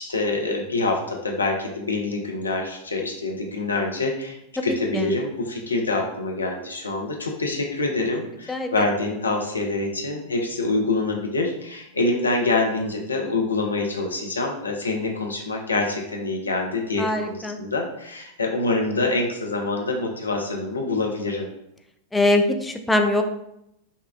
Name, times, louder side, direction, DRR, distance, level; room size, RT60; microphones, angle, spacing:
voice 1, 0.0-4.4 4.6-21.5, left 2 dB, 80° left, 1 dB, 0.6 m, -26 dB
voice 2, 17.0-17.6 22.1-23.2, left 1 dB, 10° left, 5 dB, 0.4 m, -22 dB
5.3 x 2.3 x 2.5 m, 0.79 s
figure-of-eight pair, 90°, 0 cm